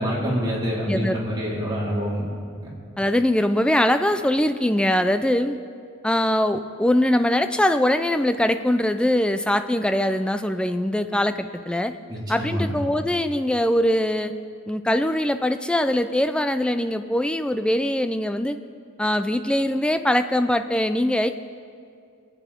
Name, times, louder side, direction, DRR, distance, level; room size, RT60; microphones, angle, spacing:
voice 1, 0.0-2.3 2.6-2.7 12.1-12.7, equal, 20° right, -7 dB, 3.7 m, -26 dB
voice 2, 0.9-1.2 3.0-5.6 6.0-11.9 12.3-14.3 14.7-18.6 19.0-21.3, left 1 dB, 5° left, 9 dB, 0.4 m, -22 dB
23.0 x 9.2 x 4.4 m, 2.3 s
head